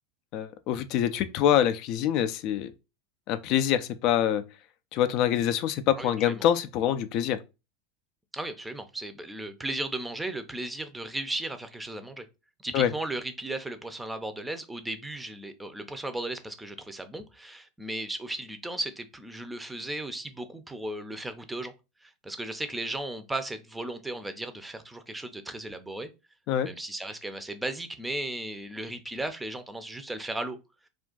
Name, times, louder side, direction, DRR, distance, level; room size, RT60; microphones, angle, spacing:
voice 1, 0.3-2.7 3.3-4.4 4.9-7.4 12.7-12.9 26.5-26.7, left 10 dB, 55° left, 0.4 m, -25 dB
voice 2, 6.0-6.4 8.3-12.2 12.6-21.7 22.0-26.1 26.6-30.6, right 1 dB, 10° right, 0.5 m, -36 dB
2.5 x 2.3 x 3.7 m
hypercardioid pair, 95°, 0 cm